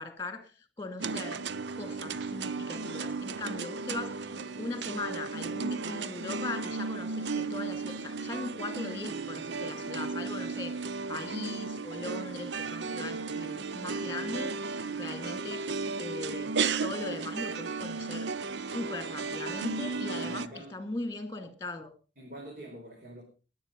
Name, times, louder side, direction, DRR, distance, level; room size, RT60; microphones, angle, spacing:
voice 1, 0.0-1.4 1.7-15.7 16.0-16.5 16.8-18.3 18.6-21.9, left 3 dB, 15° left, 8 dB, 2.4 m, -39 dB
sound 1, 1.0-20.5, right 4 dB, 80° right, 0.6 m, -35 dB
voice 2, 20.2-20.7 22.2-23.2, right 1 dB, 50° right, -1 dB, 4.8 m, -45 dB
21.5 x 8.7 x 5.3 m, 0.36 s
head